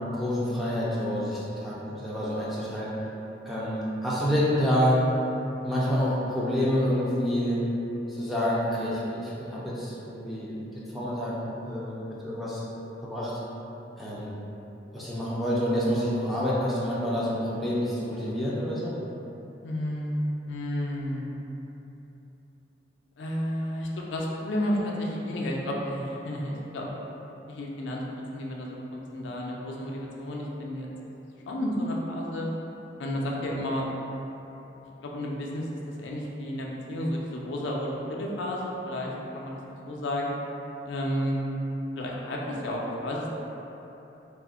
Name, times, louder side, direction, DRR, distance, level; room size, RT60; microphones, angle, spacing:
voice 1, 0.1-2.9 3.5-5.0 5.6-7.6 8.1-12.6 13.0-13.3 14.0-14.4 14.9-18.9, equal, ahead, -8 dB, 0.3 m, -28 dB
voice 2, 19.6-21.2 23.2-26.9 27.5-28.0 28.3-30.9 31.5-32.5 33.0-33.9 35.0-35.7 36.0-39.6 39.9-40.4 40.8-41.4 42.0-43.3, left 1 dB, 80° left, -2 dB, 0.4 m, -31 dB
2.4 x 2.0 x 3.5 m, 3.0 s
head